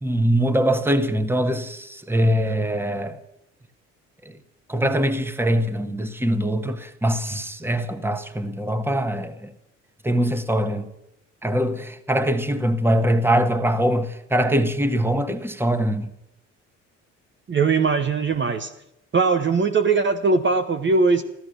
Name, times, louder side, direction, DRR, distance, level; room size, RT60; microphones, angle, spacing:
voice 1, 0.0-3.2 4.2-4.4 4.7-9.5 10.0-10.9 11.4-16.1, equal, 5° right, 1.5 m, -22 dB
voice 2, 17.5-18.7 19.1-21.2, right 4 dB, 30° right, 1.1 m, -20 dB
14.0 x 13.5 x 6.7 m
hypercardioid pair, 60°, 35 cm